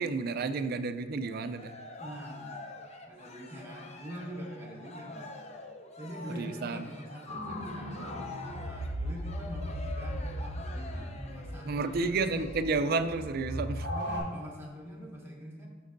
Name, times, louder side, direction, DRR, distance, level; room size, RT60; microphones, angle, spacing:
voice 1, 0.0-1.7 6.4-6.9 11.7-13.9, right 4 dB, 55° right, 11 dB, 0.4 m, -31 dB
Cheering, 1.2-13.0, left 2 dB, 35° left, 0.6 m, -47 dB
voice 2, 2.0-2.6 3.1-5.4 6.0-8.0 8.6-12.3 13.9-15.7, equal, 15° right, -2 dB, 1.3 m, -43 dB
sound 1, 7.3-14.2, equal, 65° left, 2.2 m, -37 dB
12.5 x 5.3 x 2.6 m, 1.4 s
head